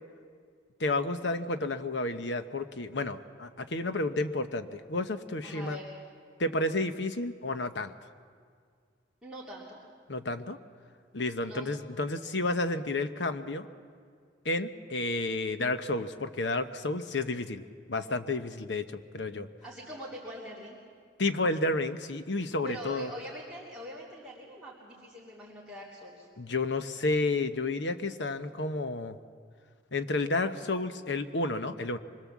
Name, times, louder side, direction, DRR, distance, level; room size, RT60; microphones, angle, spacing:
voice 1, 0.8-5.8 6.4-7.9 10.1-10.6 11.1-13.7 14.4-17.6 17.9-19.5 21.2-23.1 26.4-29.2 29.9-32.0, left 2 dB, 70° left, 10 dB, 1.0 m, -31 dB
voice 2, 5.4-5.9 9.2-9.8 11.4-11.7 19.6-20.8 22.6-26.3, equal, 5° right, -8 dB, 3.1 m, -43 dB
25.0 x 21.0 x 7.3 m, 2.1 s
head